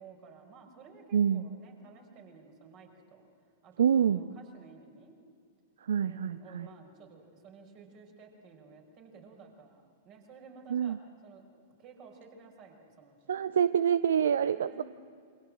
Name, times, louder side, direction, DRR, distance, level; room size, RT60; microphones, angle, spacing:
voice 1, 0.0-3.3 3.6-5.1 6.0-11.0 11.2-13.4 14.5-14.8, right 5 dB, 35° right, 3 dB, 5.5 m, -54 dB
voice 2, 1.1-1.5 3.8-4.2 5.9-6.7 10.7-11.0 13.3-14.8, right 8 dB, 65° right, 15 dB, 0.5 m, -26 dB
27.5 x 25.0 x 7.6 m, 2.3 s
figure-of-eight pair, 100°, 0 cm